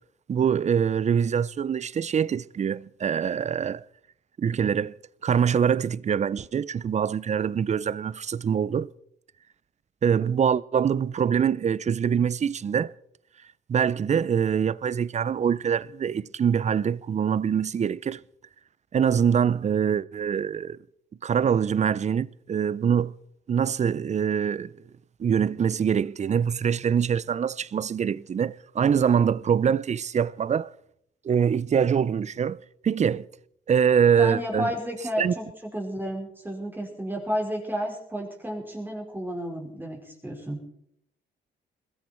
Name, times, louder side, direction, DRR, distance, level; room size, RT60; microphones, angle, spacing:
voice 1, 0.3-3.8 4.4-4.9 5.2-8.9 10.0-12.9 13.7-18.2 18.9-20.8 21.2-23.1 23.5-24.7 25.2-30.7 31.2-33.3 33.7-34.7 35.2-35.3, right 7 dB, 35° right, 0.6 m, -24 dB
voice 2, 34.2-40.6, equal, 10° right, 5.0 m, -32 dB
21.0 x 13.5 x 4.5 m
cardioid pair, 90°, 20 cm